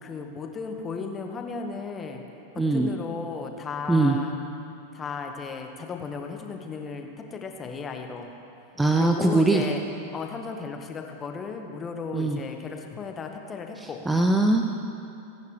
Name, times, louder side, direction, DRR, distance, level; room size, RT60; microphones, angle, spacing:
voice 1, 0.0-2.2 2.5-4.3 4.9-8.3 8.9-9.8 10.1-14.0, left 5 dB, 20° left, 4 dB, 1.4 m, -35 dB
voice 2, 2.6-2.9 3.9-4.2 8.8-9.6 12.1-12.4 13.8-14.6, right 2 dB, 10° right, 3 dB, 0.7 m, -21 dB
29.0 x 10.5 x 3.3 m, 2.7 s
figure-of-eight pair, 90°, 0 cm